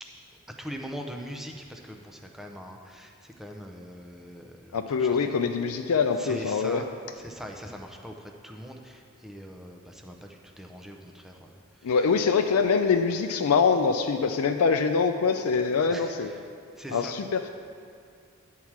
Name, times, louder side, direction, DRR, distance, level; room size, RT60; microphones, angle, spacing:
voice 1, 0.6-5.4 6.2-6.9 7.1-12.0 15.9-16.4 16.8-17.2, equal, ahead, 2 dB, 0.6 m, -42 dB
voice 2, 4.7-6.8 11.8-16.3 16.9-17.5, left 5 dB, 90° left, 5 dB, 0.4 m, -24 dB
10.0 x 4.7 x 7.2 m, 2.2 s
head